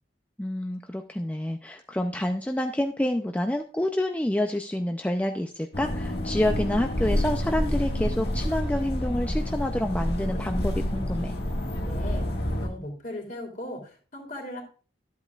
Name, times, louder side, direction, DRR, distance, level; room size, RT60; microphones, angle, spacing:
voice 1, 0.4-11.3, left 1 dB, 10° left, 5 dB, 0.4 m, -28 dB
sound 1, 5.7-12.7, left 1 dB, 60° left, 1.8 m, -28 dB
voice 2, 11.9-14.6, left 1 dB, 45° left, 2 dB, 3.0 m, -38 dB
12.5 x 8.3 x 2.4 m, 0.38 s
head